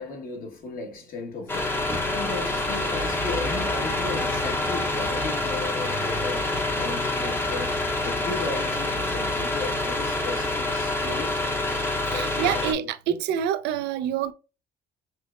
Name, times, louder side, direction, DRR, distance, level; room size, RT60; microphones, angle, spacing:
voice 1, 0.0-6.5 6.7-11.5 12.1-12.6, left 3 dB, 55° left, 1.2 m, -35 dB
sound 1, 1.5-12.7, left 2 dB, 15° left, 0.7 m, -27 dB
voice 2, 12.1-14.3, right 9 dB, 80° right, 0.4 m, -27 dB
5.8 x 2.0 x 2.4 m
cardioid pair, 110°, 17 cm